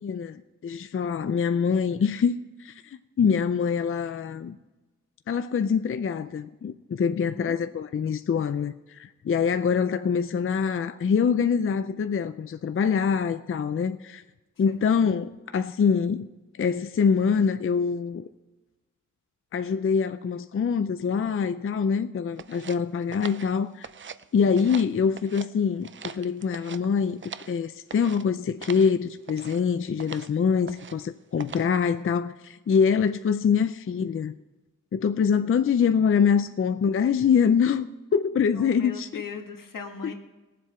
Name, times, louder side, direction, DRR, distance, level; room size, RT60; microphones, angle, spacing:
voice 1, 0.0-4.6 5.3-14.2 14.6-16.3 16.6-18.3 19.5-23.9 24.3-34.3 34.9-39.2 40.0-40.1, left 6 dB, 40° left, 0.5 m, -25 dB
voice 2, 7.2-7.6 14.7-14.8 38.5-40.1, left 6 dB, 85° left, 1.8 m, -38 dB
sound 1, 22.4-24.3 24.5-25.5 25.8-27.6 27.9-28.2 28.6-28.9 29.3-29.6 30.0-30.3 30.7-31.1 31.4-31.8, right 7 dB, 40° right, 0.4 m, -41 dB
20.0 x 7.6 x 4.4 m
wide cardioid pair, 130°, 32 cm